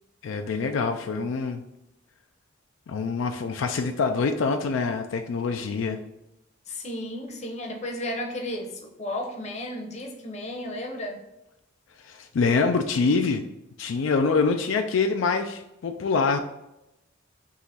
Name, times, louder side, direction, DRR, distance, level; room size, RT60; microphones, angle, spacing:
voice 1, 0.2-1.6 2.9-6.0 12.0-13.5 13.8-16.4, left 4 dB, 70° left, 6 dB, 0.4 m, -25 dB
voice 2, 6.7-11.2, left 1 dB, 35° left, 2 dB, 0.8 m, -33 dB
3.7 x 2.9 x 4.1 m, 0.88 s
head